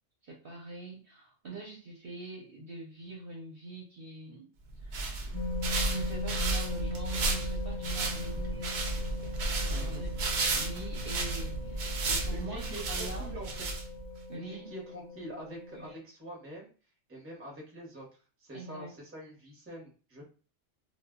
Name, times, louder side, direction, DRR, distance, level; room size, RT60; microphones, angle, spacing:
voice 1, 0.2-4.5 4.8-5.1 5.9-8.9 9.6-13.3 14.3-14.7 15.7-16.0 18.5-18.9, right 3 dB, 55° right, -3 dB, 0.7 m, -44 dB
sound 1, 4.7-14.2, right 3 dB, 75° right, 0.4 m, -33 dB
sound 2, 5.3-15.9, left 3 dB, 50° left, 0.4 m, -41 dB
voice 2, 9.7-10.1 12.3-13.5 14.3-16.7 17.1-18.1 18.4-20.3, equal, 15° right, -2 dB, 0.6 m, -45 dB
2.1 x 2.0 x 3.5 m, 0.37 s
omnidirectional pair, 1.4 m